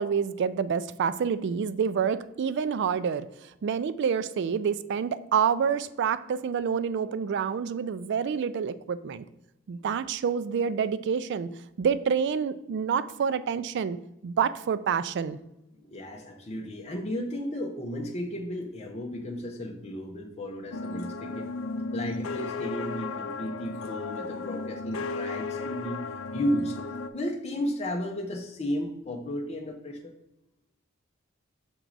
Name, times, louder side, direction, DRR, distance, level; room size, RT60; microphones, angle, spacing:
voice 1, 0.0-9.2 9.7-11.5 11.8-14.0 14.2-15.4, right 6 dB, 60° right, 14 dB, 0.3 m, -28 dB
voice 2, 15.8-21.5 21.9-26.0 26.3-26.8 27.1-30.1, equal, 30° left, 1 dB, 0.7 m, -34 dB
sound 1, 20.7-27.1, left 3 dB, 70° left, 0.5 m, -34 dB
6.1 x 4.5 x 3.9 m, 0.87 s
head